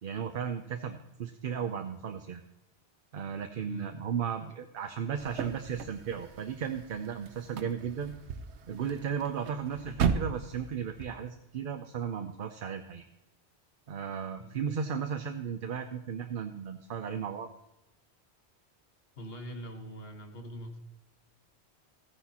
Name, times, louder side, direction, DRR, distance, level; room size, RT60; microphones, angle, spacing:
voice 1, 0.0-2.4 3.1-8.1 8.7-13.1 13.9-17.5, right 7 dB, 60° right, 6 dB, 0.8 m, -35 dB
voice 2, 3.7-4.4 14.4-14.6 19.1-20.8, right 1 dB, 60° left, 4 dB, 1.7 m, -43 dB
sound 1, 5.2-11.1, right 7 dB, 85° right, 1.0 m, -36 dB
14.5 x 9.8 x 2.9 m, 0.94 s
omnidirectional pair, 1.1 m